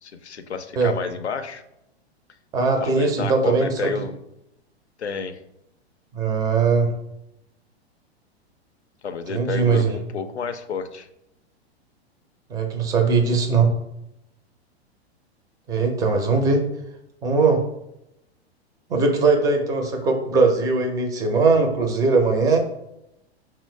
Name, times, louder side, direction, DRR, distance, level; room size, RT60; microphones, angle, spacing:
voice 1, 0.0-1.6 2.8-4.2 5.0-5.4 9.0-11.1, left 5 dB, 90° left, 9 dB, 0.5 m, -30 dB
voice 2, 2.5-4.0 6.1-6.9 9.3-10.0 12.5-13.7 15.7-16.6 17.2-17.6 18.9-22.6, right 4 dB, 10° right, 4 dB, 0.4 m, -20 dB
5.3 x 2.0 x 3.1 m, 0.86 s
figure-of-eight pair, 105°, 32 cm